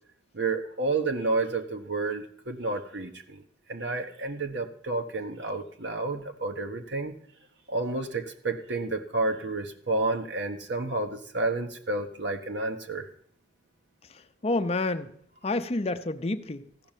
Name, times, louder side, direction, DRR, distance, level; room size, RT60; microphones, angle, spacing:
voice 1, 0.3-3.4 3.7-7.1 7.7-13.1, right 3 dB, 70° right, 1.2 m, -30 dB
voice 2, 14.1-15.1 15.4-16.6, left 2 dB, 35° left, 0.6 m, -29 dB
15.0 x 5.4 x 9.0 m
head